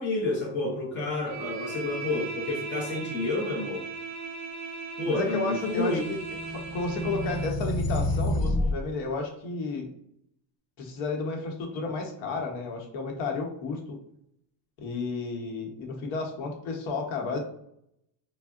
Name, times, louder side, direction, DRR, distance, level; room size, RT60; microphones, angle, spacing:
voice 1, 0.0-3.8 5.0-6.0, left 2 dB, 25° left, -4 dB, 0.6 m, -29 dB
Bowed string instrument, 1.3-7.6, right 4 dB, 40° right, 0.4 m, -38 dB
voice 2, 5.1-6.2 6.5-9.9 10.8-14.0 14.8-17.4, left 3 dB, 80° left, 2 dB, 0.8 m, -32 dB
sound 1, 5.8-8.8, left 1 dB, 50° left, 0.9 m, -29 dB
3.5 x 2.1 x 2.3 m, 0.72 s
cardioid pair, 175°, 46 cm